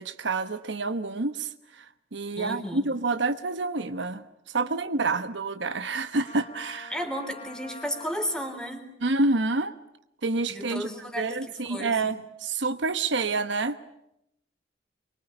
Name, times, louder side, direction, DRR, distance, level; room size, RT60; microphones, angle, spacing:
voice 1, 0.0-1.5 1.8-1.9 2.1-6.9 9.0-9.7 10.2-10.9 11.2-13.8, right 3 dB, 65° right, 11 dB, 1.1 m, -28 dB
voice 2, 2.4-2.9 6.9-8.9 10.5-12.2, equal, 5° left, 6 dB, 3.7 m, -34 dB
Trumpet, 6.2-8.8, left 4 dB, 30° left, 1.7 m, -45 dB
24.5 x 23.5 x 9.9 m, 0.82 s
head